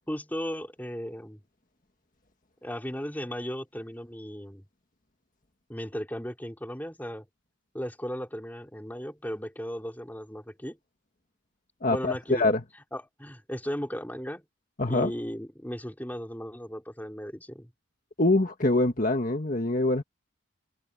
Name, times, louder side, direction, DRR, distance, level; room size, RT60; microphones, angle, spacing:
voice 1, 0.1-1.4 2.6-4.6 5.7-7.2 7.7-10.8 11.9-12.4 12.9-14.4 14.9-17.7, equal, 10° left, 3.3 m, -36 dB
voice 2, 11.8-12.6 14.8-15.1 18.2-20.0, left 2 dB, 40° left, 1.7 m, -24 dB
head